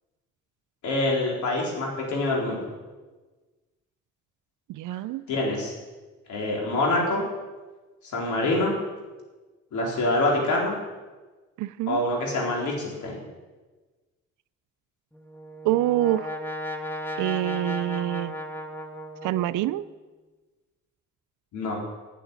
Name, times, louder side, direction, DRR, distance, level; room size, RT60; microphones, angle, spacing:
voice 1, 0.8-2.6 5.3-5.7 6.3-7.2 8.1-8.7 9.7-10.8 11.9-13.2 21.5-21.7, left 2 dB, 75° left, -2 dB, 4.2 m, -25 dB
voice 2, 4.7-5.2 11.6-12.0 15.6-16.4 17.2-18.3 19.2-19.8, right 14 dB, 85° right, 14 dB, 0.5 m, -26 dB
Brass instrument, 15.1-19.9, left 1 dB, 5° left, 1.4 m, -35 dB
9.2 x 8.7 x 9.4 m, 1.3 s
cardioid pair, 90°, 30 cm